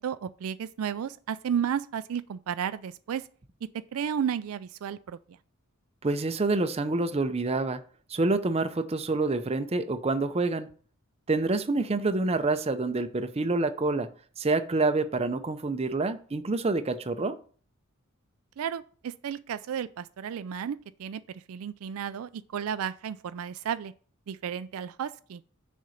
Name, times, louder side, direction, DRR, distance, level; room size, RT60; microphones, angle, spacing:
voice 1, 0.0-3.3 3.6-5.4 18.6-23.9 24.3-25.4, right 8 dB, 75° right, 0.4 m, -33 dB
voice 2, 6.0-7.8 8.1-10.7 11.3-14.1 14.4-17.4, right 3 dB, 30° right, 0.6 m, -27 dB
6.6 x 4.3 x 6.4 m
head